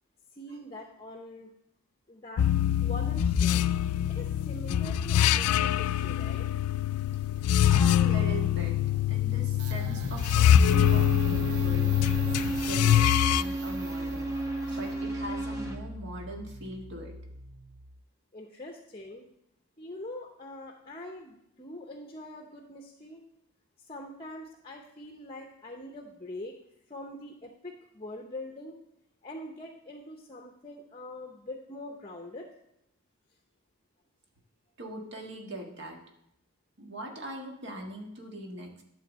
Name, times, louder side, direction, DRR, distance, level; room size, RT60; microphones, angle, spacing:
voice 1, 0.3-1.5 2.1-2.5 2.8-3.6 4.1-6.5 18.3-19.3 19.8-23.2 23.8-26.6 26.9-28.8 29.2-32.5, left 1 dB, 25° left, 3 dB, 0.8 m, -43 dB
sound 1, 2.4-13.4, left 10 dB, 85° left, 0.3 m, -24 dB
voice 2, 7.6-8.7 9.1-11.9 12.4-14.3 14.7-17.2 34.8-36.0 36.8-38.8, right 1 dB, 50° right, 1 dB, 1.7 m, -41 dB
sound 2, 9.6-18.0, right 3 dB, 90° right, 0.6 m, -42 dB
sound 3, 10.7-15.8, right 2 dB, 15° right, 1.1 m, -33 dB
11.5 x 3.9 x 7.3 m, 0.78 s
head